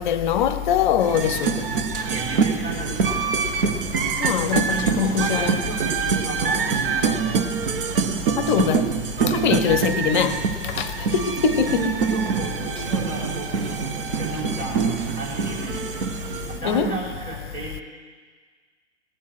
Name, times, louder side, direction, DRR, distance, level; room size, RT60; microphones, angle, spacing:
voice 1, 0.0-1.6 4.2-5.6 8.4-8.8 9.3-10.4 10.6-10.9 11.1-11.9 16.6-17.0, left 8 dB, 45° left, 0.7 m, -22 dB
sound 1, 1.0-16.6, right 6 dB, 50° right, 1.0 m, -25 dB
voice 2, 2.1-3.4 4.7-7.4 10.1-10.3 11.7-16.1 16.5-17.8, right 3 dB, 20° right, 4.3 m, -33 dB
19.0 x 7.3 x 6.0 m
figure-of-eight pair, 105°, 36 cm